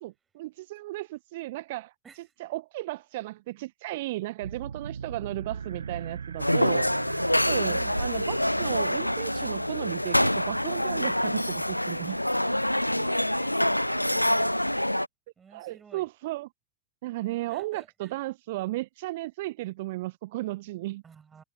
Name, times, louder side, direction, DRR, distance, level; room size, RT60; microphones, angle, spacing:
voice 1, 0.0-6.9 7.5-12.2 15.5-16.5 17.0-21.0, right 18 dB, 50° right, 0.9 m, -35 dB
sound 1, 4.4-12.5, right 6 dB, 70° right, 0.4 m, -40 dB
sound 2, 6.4-15.1, left 1 dB, 90° left, 0.4 m, -26 dB
voice 2, 7.7-8.0 15.4-16.1 17.5-18.1 21.0-21.4, right 6 dB, 20° right, 6.2 m, -52 dB
figure-of-eight pair, 90°, 0 cm